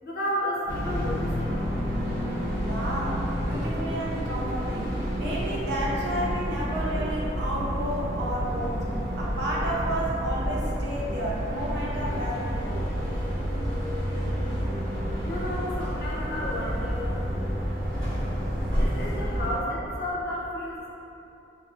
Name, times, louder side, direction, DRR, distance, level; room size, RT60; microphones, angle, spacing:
voice 1, 0.0-1.6 15.2-17.1 18.8-20.9, equal, 50° left, -6 dB, 0.6 m, -32 dB
sound 1, 0.7-19.6, equal, 80° right, 1.2 m, -29 dB
voice 2, 2.6-12.9, right 1 dB, 55° right, -5 dB, 0.4 m, -32 dB
3.2 x 2.3 x 2.4 m, 2.9 s
head